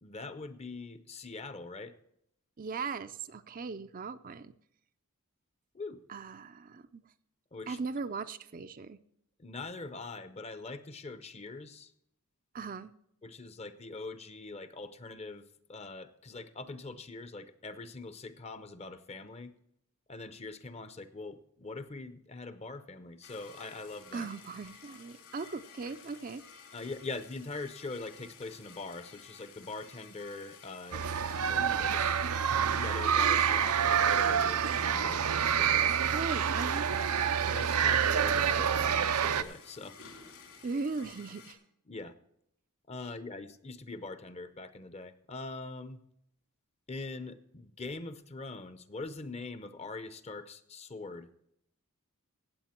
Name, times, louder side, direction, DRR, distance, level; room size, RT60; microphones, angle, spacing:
voice 1, 0.0-2.0 5.7-6.0 7.5-7.8 9.4-11.9 13.2-19.5 20.1-24.3 26.7-31.0 31.4-32.1 32.7-36.0 37.5-40.0 41.9-42.1 42.9-46.0 46.9-51.3, left 3 dB, 30° left, 13 dB, 0.7 m, -43 dB
voice 2, 2.6-4.5 6.1-7.0 7.7-9.0 12.5-12.9 24.1-26.4 36.1-37.2 40.6-41.6, right 4 dB, 40° right, 10 dB, 0.5 m, -38 dB
sound 1, 23.2-41.5, left 6 dB, 65° left, 3.0 m, -53 dB
sound 2, 30.9-39.4, right 8 dB, 85° right, 0.6 m, -27 dB
16.0 x 8.2 x 4.4 m, 0.76 s
head